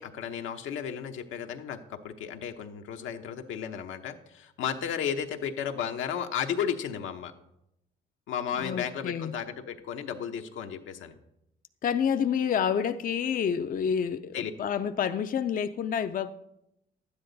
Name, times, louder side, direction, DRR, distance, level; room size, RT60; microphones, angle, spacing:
voice 1, 0.0-7.3 8.3-11.1 14.3-14.5, left 8 dB, 80° left, 5 dB, 0.9 m, -34 dB
voice 2, 8.6-9.3 11.8-16.3, left 7 dB, 45° left, 9 dB, 0.5 m, -28 dB
12.0 x 9.7 x 4.0 m, 0.83 s
cardioid pair, 90°, 20 cm